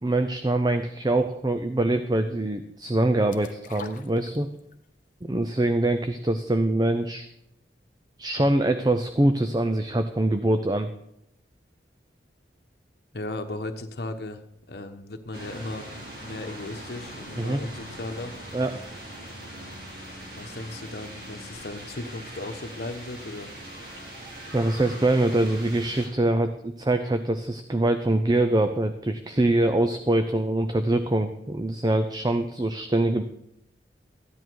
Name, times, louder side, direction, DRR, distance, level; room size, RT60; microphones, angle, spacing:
voice 1, 0.0-4.5 5.2-7.3 8.2-10.9 17.4-17.6 18.5-18.7 24.5-33.2, right 1 dB, 20° right, 8 dB, 0.5 m, -24 dB
sound 1, 3.3-4.8 5.2-5.3, left 4 dB, 45° left, 0.8 m, -42 dB
voice 2, 13.1-14.4 14.7-18.4 20.3-23.5, left 2 dB, 65° left, 5 dB, 1.1 m, -36 dB
sound 2, 15.3-26.1, right 1 dB, 60° right, 3.8 m, -41 dB
14.0 x 10.5 x 4.7 m, 0.78 s
head